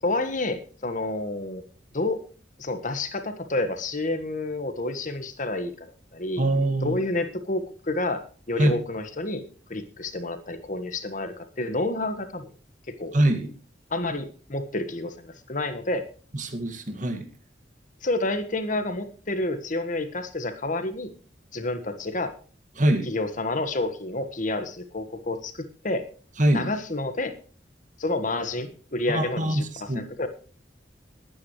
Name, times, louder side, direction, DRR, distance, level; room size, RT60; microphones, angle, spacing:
voice 1, 0.0-1.6 1.9-2.2 2.6-6.4 6.8-8.2 8.5-9.4 9.7-12.5 13.0-13.1 13.9-16.0 18.0-21.1 21.5-22.3 23.1-26.0 26.5-27.3 28.0-30.3, left 2 dB, 45° left, 9 dB, 1.5 m, -29 dB
voice 2, 6.4-7.0 8.6-8.7 13.1-13.5 16.3-17.3 22.8-23.1 26.4-26.7 29.1-30.0, right 1 dB, 45° right, 5 dB, 2.0 m, -23 dB
21.5 x 9.6 x 3.2 m, 0.39 s
head